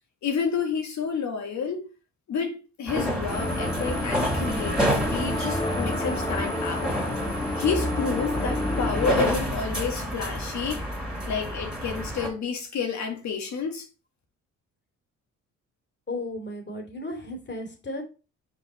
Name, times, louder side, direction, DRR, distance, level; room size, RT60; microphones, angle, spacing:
voice 1, 0.2-1.9 2.3-7.0 7.6-10.8 11.3-13.9, left 6 dB, 70° left, 2.0 m, -30 dB
sound 1, 2.9-12.3, equal, ahead, 2.6 m, -29 dB
sound 2, 3.3-9.3, left 2 dB, 15° left, 1.3 m, -31 dB
voice 2, 16.1-18.0, left 1 dB, 35° left, 2.6 m, -34 dB
5.5 x 5.0 x 4.2 m
cardioid pair, 90°, 30 cm